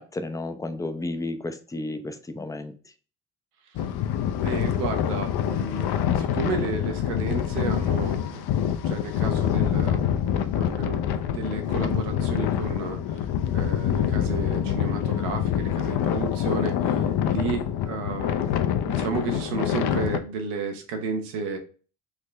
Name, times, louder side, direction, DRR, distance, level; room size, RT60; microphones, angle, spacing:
voice 1, 0.0-2.7, left 2 dB, 10° left, 9 dB, 0.3 m, -32 dB
sound 1, 3.8-20.2, left 9 dB, 60° left, 0.5 m, -26 dB
voice 2, 4.4-13.3 13.5-18.6 18.8-21.6, right 4 dB, 90° right, 4 dB, 0.7 m, -33 dB
3.7 x 2.1 x 3.1 m, 0.38 s
hypercardioid pair, 50°, 45 cm